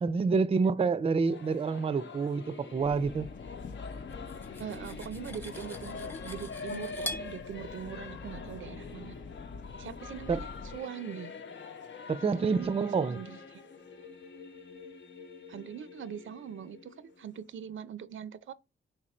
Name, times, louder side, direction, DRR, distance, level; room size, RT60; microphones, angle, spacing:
voice 1, 0.0-3.3 10.3-10.4 12.1-13.2, right 5 dB, 30° right, 0.4 m, -28 dB
Singing / Musical instrument, 1.2-17.6, left 4 dB, 70° left, 0.8 m, -46 dB
Subway metro underground, 2.8-10.8, left 4 dB, 45° left, 0.4 m, -45 dB
Cutlery silverware, 4.1-7.3, left 1 dB, 10° left, 0.9 m, -43 dB
voice 2, 4.6-9.1 9.8-11.3 12.2-13.6 15.5-18.5, right 9 dB, 85° right, 0.5 m, -42 dB
5.0 x 4.5 x 4.2 m
wide cardioid pair, 100°, 20 cm